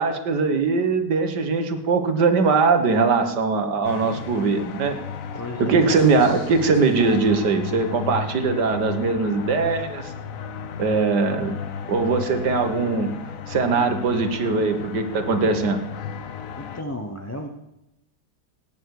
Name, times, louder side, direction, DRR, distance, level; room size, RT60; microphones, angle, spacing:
voice 1, 0.0-5.0 5.6-10.1 10.8-11.6 11.9-13.1 13.5-15.8, right 4 dB, 70° right, 7 dB, 1.9 m, -21 dB
sound 1, 3.8-16.8, left 7 dB, 60° left, 1.1 m, -34 dB
voice 2, 5.4-6.0 16.6-17.5, left 1 dB, 15° left, 2 dB, 0.6 m, -33 dB
17.0 x 9.3 x 4.8 m, 0.93 s
omnidirectional pair, 1.9 m